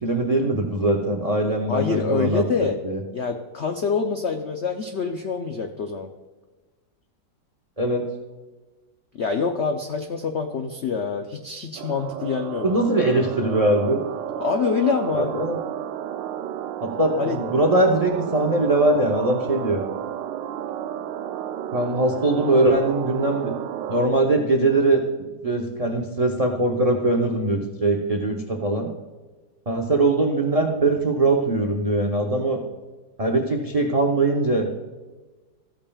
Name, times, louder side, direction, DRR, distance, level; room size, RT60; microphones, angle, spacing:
voice 1, 0.0-2.4 2.8-3.0 7.8-8.0 12.6-14.0 15.1-15.6 16.8-19.8 21.7-23.5 23.9-25.0 25.4-28.9 29.7-32.6 33.2-34.7, right 2 dB, 65° right, 3 dB, 0.3 m, -21 dB
voice 2, 1.7-2.8 3.1-6.1 9.1-12.8 14.4-15.3 17.2-17.4, left 5 dB, 80° left, 5 dB, 0.6 m, -26 dB
sound 1, 11.8-24.1, right 10 dB, 85° right, 1.3 m, -32 dB
14.5 x 8.7 x 2.3 m, 1.2 s
omnidirectional pair, 1.9 m